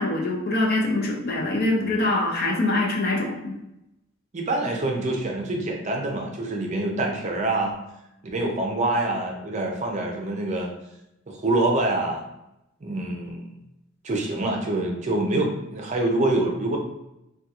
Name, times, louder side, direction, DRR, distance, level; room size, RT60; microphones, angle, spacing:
voice 1, 0.0-3.5, left 2 dB, 50° left, 0 dB, 0.6 m, -24 dB
voice 2, 4.3-7.7 8.2-10.7 11.3-12.2 12.8-13.5 14.0-16.8, right 2 dB, 35° right, 1 dB, 0.5 m, -26 dB
3.5 x 2.2 x 2.8 m, 0.87 s
head